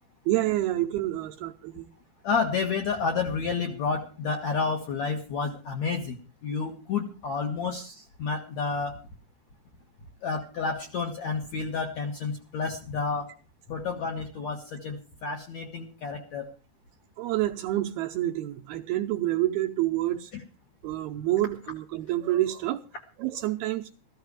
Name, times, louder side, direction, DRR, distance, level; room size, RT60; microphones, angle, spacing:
voice 1, 0.3-1.9 17.2-20.3 20.8-22.8 23.2-23.9, right 15 dB, 75° right, 2.4 m, -28 dB
voice 2, 2.2-6.2 6.4-9.0 10.2-13.3 13.7-15.0 15.2-16.4, left 5 dB, 60° left, 2.0 m, -30 dB
14.5 x 14.0 x 4.8 m
omnidirectional pair, 5.1 m